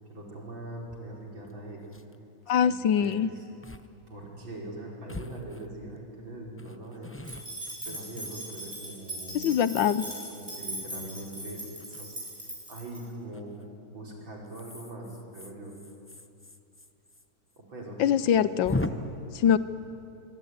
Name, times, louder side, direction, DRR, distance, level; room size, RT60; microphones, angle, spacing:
voice 1, 0.1-1.8 2.5-3.5 4.1-7.1 7.8-9.5 10.3-12.2 12.7-13.5 13.9-15.8 17.6-19.1, right 1 dB, 80° right, -1 dB, 5.8 m, -42 dB
sound 1, 0.9-1.0 1.5-1.6 1.8-2.1 3.0-3.2 3.6-3.9 4.2-4.3 5.1-6.0 6.6-8.8 9.3-10.1 11.8-12.0 13.3-13.7 14.4-17.2 17.5-17.6 17.9-18.0 18.6-18.9, left 2 dB, 20° left, 0.3 m, -39 dB
voice 2, 2.5-3.3 9.3-10.1 18.0-18.8 19.4-19.6, left 8 dB, 80° left, 15 dB, 1.6 m, -23 dB
sound 2, 7.2-13.0, right 1 dB, 15° right, 8.0 m, -39 dB
25.0 x 24.5 x 9.6 m, 2.7 s
omnidirectional pair, 2.1 m